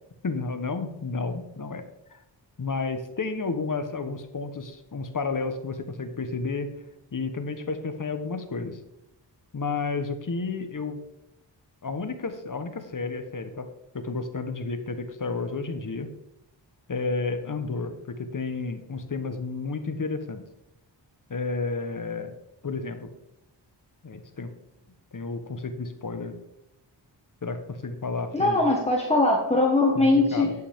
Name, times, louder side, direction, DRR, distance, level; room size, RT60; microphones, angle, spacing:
voice 1, 0.2-2.2 2.6-6.7 7.1-8.8 9.5-11.0 11.8-13.7 13.9-16.1 16.9-20.4 21.3-22.3 22.6-23.1 24.0-24.5 25.1-26.3 27.4-28.6 29.9-30.5, left 4 dB, 45° left, 8 dB, 1.2 m, -31 dB
voice 2, 28.3-30.5, left 2 dB, 15° left, -1 dB, 1.6 m, -21 dB
11.5 x 8.3 x 3.7 m, 0.83 s
wide cardioid pair, 75°, 44 cm